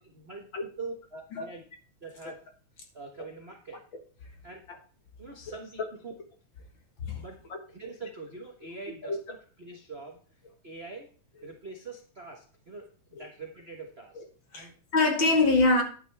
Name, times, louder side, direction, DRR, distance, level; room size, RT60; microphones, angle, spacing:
voice 1, 0.0-1.6 2.0-2.4 2.9-3.8 4.4-4.7 5.2-6.1 7.2-7.3 7.7-10.2 10.6-11.1 11.4-14.2 14.5-14.7, right 3 dB, 45° right, 0.7 m, -44 dB
voice 2, 14.5-15.8, left 2 dB, 45° left, 2.0 m, -24 dB
11.0 x 8.8 x 3.5 m
omnidirectional pair, 3.4 m